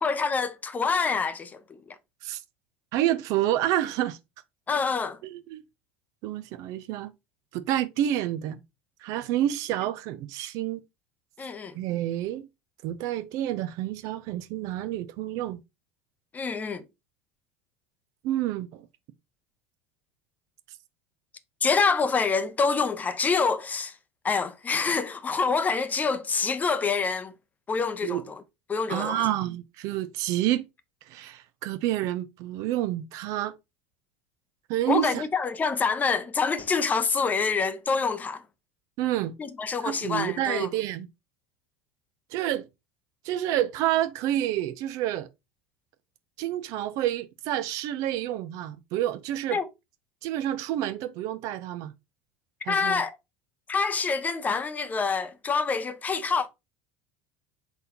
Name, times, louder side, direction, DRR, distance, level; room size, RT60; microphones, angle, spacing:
voice 1, 0.0-1.8 4.7-5.2 11.4-11.7 16.3-16.8 21.6-23.9 24.2-27.3 27.7-28.4 28.7-29.2 34.9-38.4 39.4-40.7 49.5-49.7 52.7-53.2 53.7-56.5, left 5 dB, 25° left, 0.6 m, -26 dB
voice 2, 2.9-4.2 5.2-5.6 6.2-7.1 7.5-8.6 9.0-10.8 11.8-12.4 12.8-15.6 18.2-18.9 28.0-28.2 28.9-30.7 31.1-33.6 34.7-35.2 39.0-39.3 39.8-41.1 42.3-42.7 43.2-45.3 46.4-49.6 50.2-51.9 52.7-53.0, right 12 dB, 60° right, 0.4 m, -28 dB
3.9 x 3.8 x 2.8 m
hypercardioid pair, 80°, 7 cm